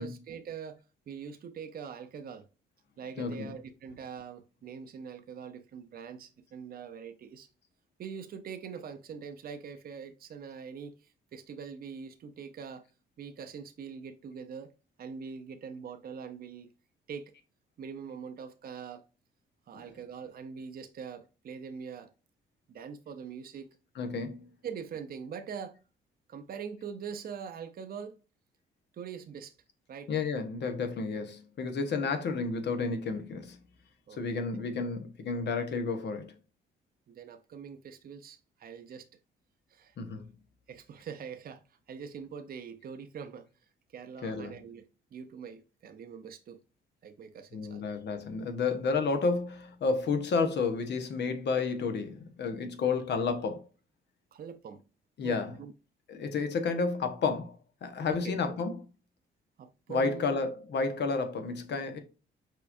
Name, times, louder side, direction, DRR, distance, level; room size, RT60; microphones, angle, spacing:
voice 1, 0.0-2.5 3.0-7.5 8.0-12.9 13.2-14.7 15.0-16.7 17.1-17.3 17.8-19.1 19.7-22.1 22.7-23.7 24.6-25.8 26.3-28.2 28.9-29.5 29.9-30.1 34.1-34.4 37.1-39.1 39.7-40.0 40.7-43.5 43.9-46.6 47.0-47.9 54.3-54.8 55.2-55.7 58.1-58.5 59.6-60.4, right 6 dB, 50° right, 0.7 m, -43 dB
voice 2, 3.2-3.6 19.7-20.0 23.9-24.5 30.1-33.6 34.2-36.3 40.0-40.3 44.2-44.5 47.5-53.6 55.2-55.6 56.1-57.6 57.8-58.9 59.9-62.0, left 4 dB, 60° left, 1.2 m, -31 dB
5.6 x 3.7 x 2.6 m
cardioid pair, 90°, 20 cm